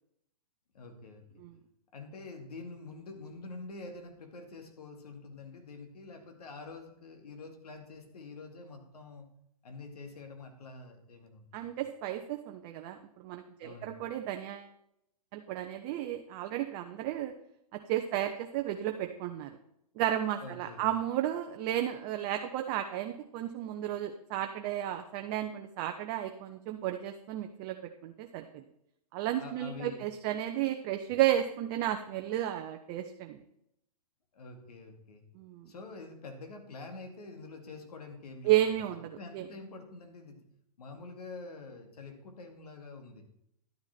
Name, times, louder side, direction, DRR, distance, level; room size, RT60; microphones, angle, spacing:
voice 1, 0.7-1.3 1.9-9.3 9.6-11.7 13.6-14.0 20.4-20.8 29.4-30.0 34.3-35.2 35.7-40.4 40.8-43.3, left 3 dB, 80° left, 4 dB, 2.3 m, -46 dB
voice 2, 11.5-14.7 15.3-17.3 17.7-19.6 20.0-27.8 28.0-28.6 29.1-33.4 35.4-35.7 38.4-39.4, right 12 dB, 35° right, 5 dB, 0.8 m, -33 dB
11.5 x 7.0 x 4.4 m, 0.77 s
hypercardioid pair, 130°, 20 cm